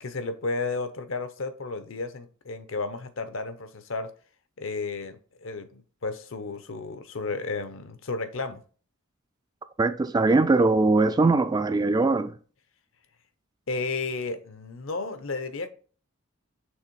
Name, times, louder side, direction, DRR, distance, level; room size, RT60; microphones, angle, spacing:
voice 1, 0.0-4.1 4.6-8.6 13.7-15.7, left 3 dB, 65° left, 0.7 m, -33 dB
voice 2, 9.8-12.3, right 3 dB, 20° right, 0.3 m, -21 dB
6.4 x 3.5 x 4.5 m
head